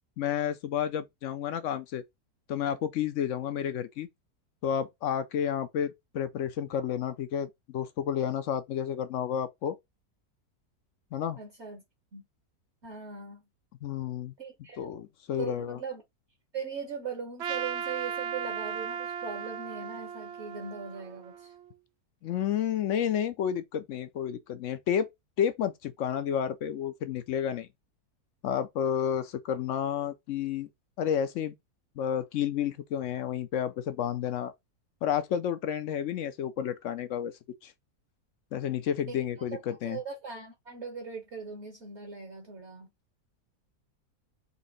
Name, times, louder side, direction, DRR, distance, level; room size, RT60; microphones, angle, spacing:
voice 1, 0.2-2.0 2.5-4.1 4.6-9.8 11.1-11.4 13.8-14.3 14.8-15.8 22.2-25.1 25.4-27.7 28.4-30.7 31.0-31.5 32.0-34.5 35.0-37.3 37.6-37.7 38.5-40.0, left 9 dB, 70° left, 0.7 m, -31 dB
voice 2, 11.4-11.8 12.1-12.2 12.8-13.4 14.4-14.8 15.4-16.0 16.5-21.5 39.1-39.2 39.7-42.9, right 5 dB, 50° right, 1.1 m, -40 dB
Trumpet, 17.4-21.7, right 7 dB, 90° right, 0.5 m, -36 dB
4.2 x 2.8 x 3.9 m
omnidirectional pair, 1.7 m